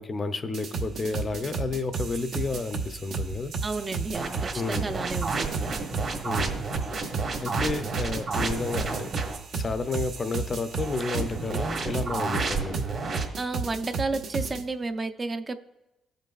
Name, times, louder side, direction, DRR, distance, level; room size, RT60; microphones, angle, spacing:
voice 1, 0.0-3.5 4.5-4.9 6.2-6.6 7.4-12.8, left 3 dB, 35° left, 10 dB, 0.5 m, -31 dB
sound 1, 0.5-14.6, right 4 dB, 70° right, 0.8 m, -33 dB
voice 2, 3.6-5.7 13.4-15.5, right 3 dB, 30° right, 8 dB, 0.5 m, -32 dB
sound 2, 4.1-9.4 10.8-13.3, right 4 dB, 50° right, 1.3 m, -31 dB
15.0 x 5.2 x 2.4 m, 0.94 s
cardioid pair, 90°, 0 cm